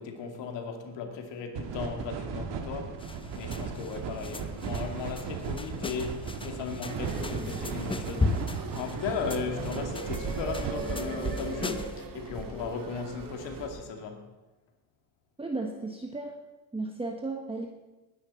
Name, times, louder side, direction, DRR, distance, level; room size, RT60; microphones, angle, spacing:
voice 1, 0.0-3.0 3.3-14.3, left 5 dB, 80° left, 2.4 m, -36 dB
sound 1, 1.5-10.7, right 6 dB, 70° right, 1.8 m, -36 dB
sound 2, 3.0-12.0, left 3 dB, 10° left, 0.7 m, -37 dB
sound 3, 6.9-13.7, right 4 dB, 50° right, 2.1 m, -38 dB
voice 2, 15.4-16.3 16.7-17.7, right 3 dB, 15° right, 1.3 m, -34 dB
20.0 x 9.8 x 4.3 m
cardioid pair, 100°, 43 cm